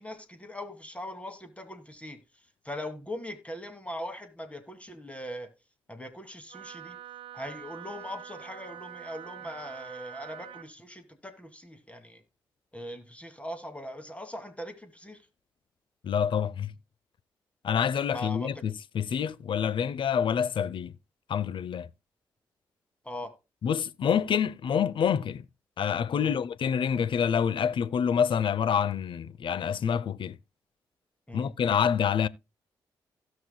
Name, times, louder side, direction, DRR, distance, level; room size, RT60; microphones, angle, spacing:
voice 1, 0.0-2.2 2.6-5.5 5.9-7.0 7.3-12.2 12.7-15.2 18.1-18.6 23.0-23.3 26.2-26.4 31.3-31.5, left 1 dB, 15° left, 2.4 m, -40 dB
Wind instrument woodwind instrument, 6.5-10.7, right 11 dB, 70° right, 0.5 m, -45 dB
voice 2, 16.0-16.7 17.6-20.9 21.3-21.9 23.6-25.5 25.8-30.4 31.3-32.3, left 7 dB, 60° left, 0.6 m, -27 dB
16.5 x 6.2 x 2.2 m
hypercardioid pair, 40°, 9 cm